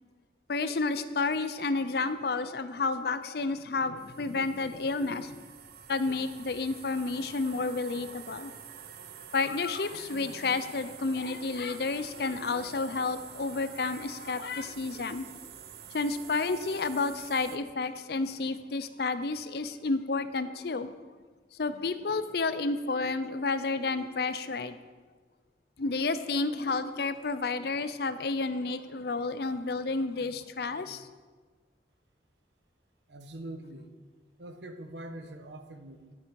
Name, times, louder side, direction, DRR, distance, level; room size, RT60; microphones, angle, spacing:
voice 1, 0.5-5.4 5.9-8.6 9.3-15.3 15.9-20.9 21.6-24.8 25.8-31.1, left 3 dB, 60° left, 12 dB, 0.6 m, -31 dB
sound 1, 4.0-17.6, right 8 dB, 60° right, 0.6 m, -48 dB
voice 2, 33.1-33.9 34.4-36.1, right 1 dB, 80° right, 7 dB, 1.1 m, -43 dB
11.5 x 8.7 x 4.7 m, 1.4 s
head